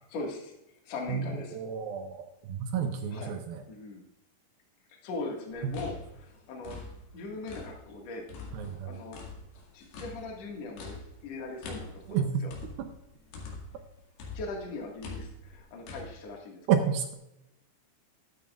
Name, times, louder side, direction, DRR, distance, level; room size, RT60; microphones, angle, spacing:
voice 1, 0.1-0.5 0.8-1.6 3.1-3.4 3.7-4.0 5.0-6.8 7.1-8.3 8.8-9.2 9.7-12.5 14.3-16.9, left 3 dB, 50° left, -1 dB, 2.4 m, -40 dB
voice 2, 1.5-3.6 5.6-5.8 8.5-8.9 12.1-12.5 12.8-12.9 16.7-17.1, right 7 dB, 80° right, 6 dB, 2.3 m, -30 dB
sound 1, 5.5-8.0 8.3-13.9 14.2-16.1, left 3 dB, 75° left, 3.9 m, -44 dB
13.0 x 12.5 x 2.4 m, 0.86 s
omnidirectional pair, 4.8 m